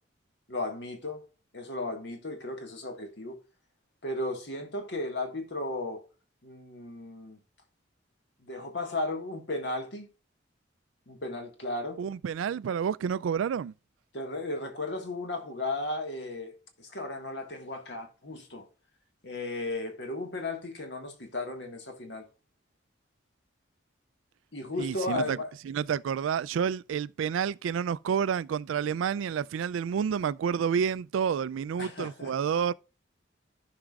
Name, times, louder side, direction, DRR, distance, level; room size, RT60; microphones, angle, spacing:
voice 1, 0.5-1.2 1.5-3.4 4.0-6.0 6.4-7.4 8.4-10.1 11.1-12.0 14.1-18.7 19.2-22.3 24.5-25.5 31.8-32.3, left 2 dB, 60° left, 1.6 m, -35 dB
voice 2, 12.0-13.7 24.8-25.4 25.7-32.7, right 7 dB, 85° right, 0.3 m, -29 dB
15.0 x 5.0 x 2.4 m
head